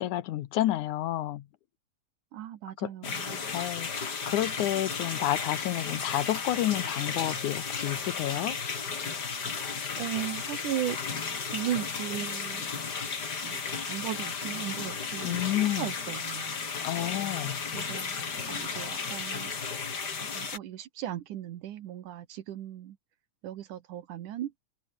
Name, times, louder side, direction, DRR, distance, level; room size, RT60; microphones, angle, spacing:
voice 1, 0.0-1.4 2.8-3.1 3.5-8.6 15.2-15.9 16.8-17.6, left 14 dB, 80° left, 2.4 m, -30 dB
voice 2, 2.3-3.4 10.0-11.0 11.5-12.6 13.4-13.6 13.9-16.5 17.7-18.2 18.5-19.5 20.3-23.0 23.4-24.5, right 12 dB, 80° right, 2.8 m, -36 dB
sound 1, 3.0-20.6, left 5 dB, 35° left, 2.6 m, -34 dB
omnidirectional pair, 3.6 m